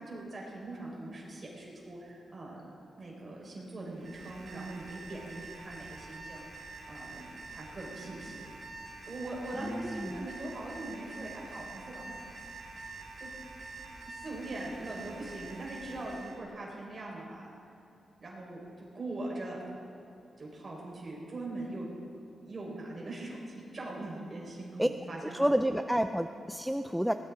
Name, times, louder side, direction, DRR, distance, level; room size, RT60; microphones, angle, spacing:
voice 1, 0.0-2.6 3.0-7.3 7.5-8.5 9.1-12.2 12.7-13.3 14.0-17.5 18.2-19.6 20.4-21.9 22.4-25.8 26.2-26.3, right 2 dB, 30° right, -4 dB, 4.7 m, -41 dB
Alarm, 3.9-16.4, right 3 dB, 55° right, 3.1 m, -46 dB
voice 2, 9.6-10.3 24.8-24.9 25.2-27.1, equal, ahead, 8 dB, 0.4 m, -29 dB
20.5 x 18.5 x 3.8 m, 2.6 s
wide cardioid pair, 170°, 0 cm